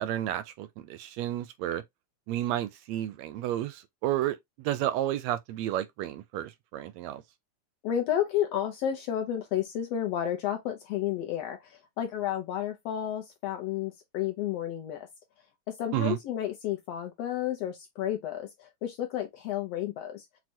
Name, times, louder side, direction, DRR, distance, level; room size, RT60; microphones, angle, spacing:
voice 1, 0.0-1.8 2.3-7.2 15.9-16.2, right 13 dB, 80° right, 1.6 m, -31 dB
voice 2, 7.8-11.6 12.0-15.1 15.8-20.3, left 11 dB, 75° left, 1.5 m, -31 dB
6.1 x 2.2 x 2.7 m
omnidirectional pair, 3.3 m